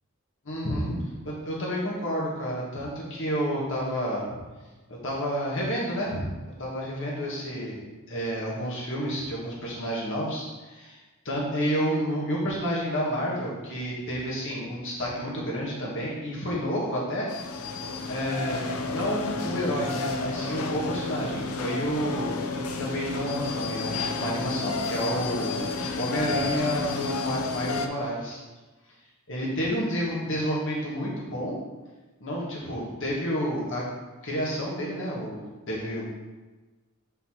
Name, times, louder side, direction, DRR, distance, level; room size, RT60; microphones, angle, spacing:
voice 1, 0.4-1.0 1.3-4.3 4.9-6.2 6.6-11.0 11.2-17.3 18.1-25.7 26.0-28.4 29.3-31.6 32.2-33.9 34.2-36.1, equal, 60° left, -4 dB, 2.2 m, -30 dB
sound 1, 17.3-27.9, left 3 dB, 75° left, 0.6 m, -31 dB
5.4 x 4.5 x 6.0 m, 1.2 s
head